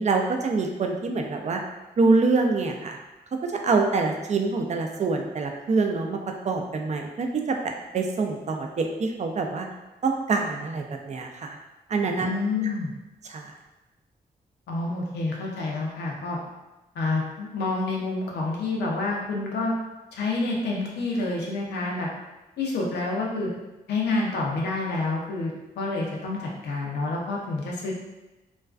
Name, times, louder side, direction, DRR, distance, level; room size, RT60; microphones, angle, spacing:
voice 1, 0.0-1.6 2.0-3.0 3.4-9.7 10.0-11.6 11.9-12.3 13.3-13.5, right 3 dB, 45° right, 3 dB, 0.4 m, -25 dB
voice 2, 12.1-12.9 14.7-16.4 17.0-19.7 20.1-22.1 22.6-23.5 23.9-27.9, left 3 dB, 85° left, -2 dB, 0.5 m, -28 dB
2.3 x 2.3 x 2.3 m, 1.0 s
cardioid pair, 55°, 17 cm